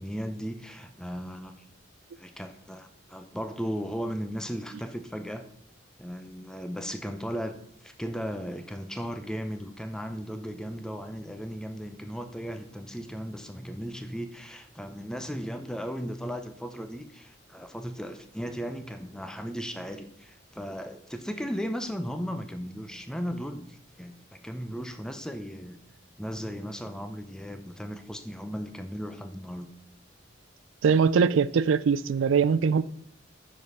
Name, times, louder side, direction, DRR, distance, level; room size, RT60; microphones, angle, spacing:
voice 1, 0.0-1.5 2.2-5.5 6.0-25.8 26.2-29.7, equal, 5° left, 0.6 m, -36 dB
voice 2, 30.8-32.8, right 6 dB, 85° right, 0.4 m, -22 dB
9.4 x 5.0 x 5.6 m
head